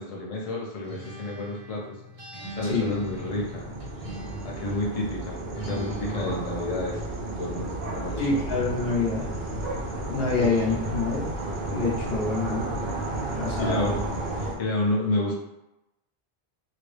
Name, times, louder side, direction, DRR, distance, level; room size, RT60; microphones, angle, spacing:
voice 1, 0.0-1.8 2.5-3.6 4.4-7.0 7.4-8.5 10.3-10.6 13.6-14.0 14.3-15.3, left 1 dB, 40° left, -3 dB, 0.7 m, -30 dB
Acoustic guitar, 0.8-4.9 5.5-7.1, equal, 35° right, 1.4 m, -40 dB
sound 1, 2.4-14.5, right 2 dB, 65° right, 0.8 m, -33 dB
voice 2, 8.2-9.3 10.1-11.3 11.7-12.7 13.3-14.0, left 3 dB, 75° left, -4 dB, 1.1 m, -26 dB
2.9 x 2.6 x 3.2 m, 0.90 s
omnidirectional pair, 1.0 m